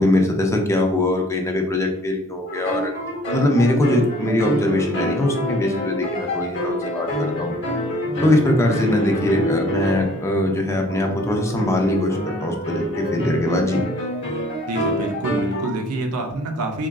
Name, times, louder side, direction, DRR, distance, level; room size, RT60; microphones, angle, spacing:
voice 1, 0.0-2.9 3.3-7.5 8.2-13.8, left 1 dB, 15° left, 2 dB, 0.3 m, -21 dB
sound 1, 2.5-15.7, equal, 55° left, 0.7 m, -26 dB
voice 2, 8.8-9.3 14.7-16.9, right 2 dB, 90° right, 4 dB, 0.5 m, -27 dB
3.6 x 2.3 x 2.2 m, 0.77 s
head